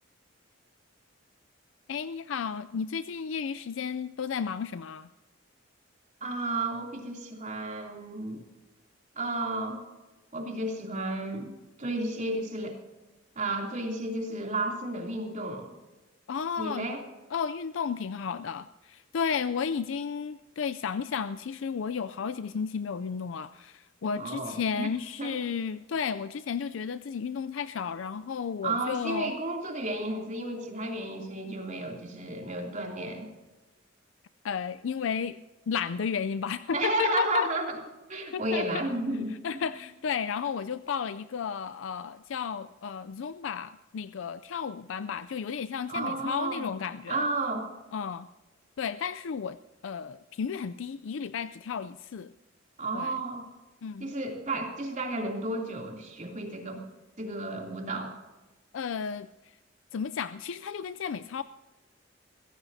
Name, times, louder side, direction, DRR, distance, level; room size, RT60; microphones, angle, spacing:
voice 1, 1.9-5.1 16.3-16.9 17.3-29.3 34.4-35.4 35.7-37.5 38.3-38.8 39.4-47.2 47.9-48.3 48.8-49.6 49.8-52.3 52.9-53.2 53.8-54.1 58.7-59.3 59.9-61.4, left 6 dB, 75° left, 14 dB, 0.4 m, -33 dB
voice 2, 6.2-8.4 9.2-9.8 10.3-12.8 13.4-15.7 16.6-17.0 24.1-24.9 25.2-25.4 28.6-33.3 36.7-37.7 38.1-39.7 45.9-46.7 47.1-47.7 52.8-53.5 54.0-56.8 57.2-58.1, right 2 dB, 40° right, 1 dB, 3.0 m, -32 dB
23.0 x 15.5 x 2.7 m, 1.1 s
head